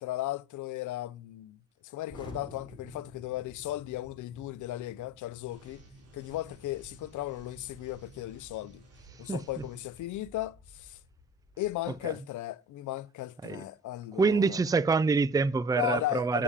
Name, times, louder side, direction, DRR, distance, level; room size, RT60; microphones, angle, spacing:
voice 1, 0.0-1.6 1.8-5.8 6.1-8.8 9.2-11.0 11.6-14.6 15.8-16.4, left 16 dB, 80° left, 0.6 m, -36 dB
Explosion, 2.1-12.0, left 1 dB, 15° left, 5.6 m, -52 dB
sound 1, 5.5-9.9, right 3 dB, 55° right, 3.9 m, -56 dB
voice 2, 14.2-16.4, right 4 dB, 10° right, 0.4 m, -26 dB
8.6 x 7.0 x 5.0 m
cardioid pair, 90°, 30 cm